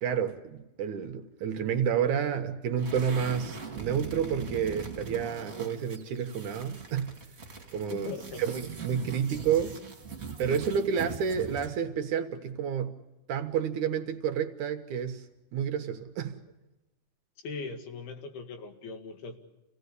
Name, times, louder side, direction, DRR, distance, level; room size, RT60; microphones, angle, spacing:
voice 1, 0.0-7.2 7.7-8.1 8.4-9.8 10.4-13.0 13.3-15.2 15.5-16.4, right 7 dB, 65° right, 2.3 m, -30 dB
sound 1, 2.8-11.8, right 5 dB, 25° right, 2.7 m, -41 dB
voice 2, 7.9-8.4 17.4-19.4, left 4 dB, 90° left, 4.0 m, -39 dB
28.5 x 17.5 x 8.3 m
omnidirectional pair, 4.3 m